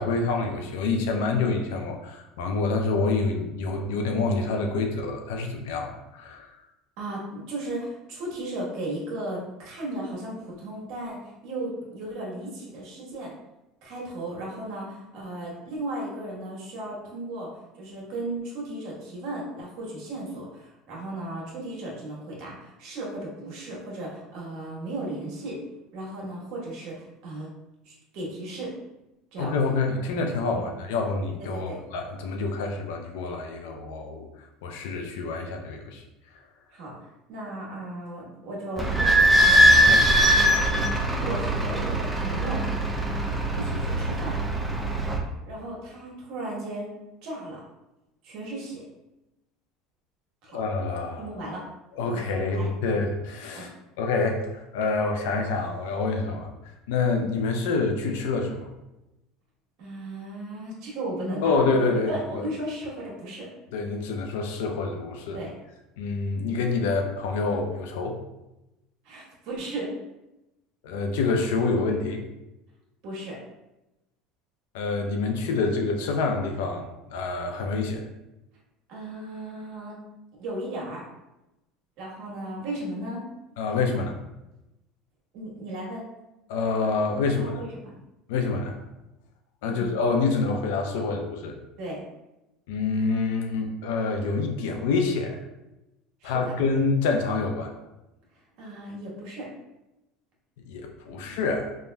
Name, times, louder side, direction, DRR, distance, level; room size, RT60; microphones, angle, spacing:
voice 1, 0.0-6.5 29.4-34.3 34.6-36.0 39.8-40.1 50.5-51.3 52.0-53.7 54.0-56.5 56.9-58.7 61.4-62.5 63.7-65.4 66.0-68.2 70.8-72.2 74.7-78.1 83.6-84.2 86.5-87.6 88.3-88.8 89.6-91.6 92.7-95.4 96.2-97.7 100.7-101.7, left 3 dB, 85° left, 3 dB, 0.5 m, -27 dB
voice 2, 7.0-13.3 13.8-17.5 17.8-25.6 25.9-27.5 27.8-28.7 29.3-29.6 30.5-30.6 31.5-31.8 36.7-39.6 40.6-42.6 43.5-44.4 45.5-46.9 47.2-47.6 48.2-48.8 50.4-50.6 51.2-51.6 52.1-52.7 53.5-53.7 59.8-61.8 62.1-63.5 65.3-65.6 69.0-69.9 73.0-73.4 78.9-80.0 80.4-81.0 82.0-83.3 85.3-86.0 87.3-87.9 89.6-90.0 91.8-92.0 96.2-96.5 98.6-99.5 101.1-101.3, right 1 dB, 65° right, -4 dB, 1.2 m, -35 dB
Idling / Squeak, 38.8-45.2, right 1 dB, 5° right, 0.4 m, -21 dB
3.5 x 2.5 x 2.2 m, 0.96 s
supercardioid pair, 120°, 0 cm